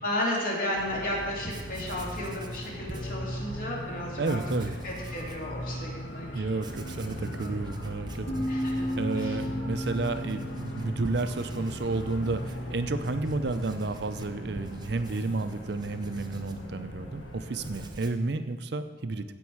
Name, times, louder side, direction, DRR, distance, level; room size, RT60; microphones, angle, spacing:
voice 1, 0.0-4.4 4.8-6.4 8.5-8.9 9.1-9.4, left 1 dB, 50° left, -3 dB, 2.4 m, -33 dB
sound 1, 0.8-17.9, equal, 85° left, 1.5 m, -38 dB
Writing, 1.2-1.3 1.5-3.7 4.2-5.5 5.9-6.0 6.5-17.2 17.5-18.3, right 2 dB, 25° right, 0.6 m, -48 dB
voice 2, 4.2-4.7 6.3-8.5 8.7-19.2, right 3 dB, 65° right, 10 dB, 0.6 m, -31 dB
sound 2, 8.3-11.9, equal, 65° left, 3.3 m, -34 dB
15.5 x 5.4 x 4.7 m, 1.5 s
head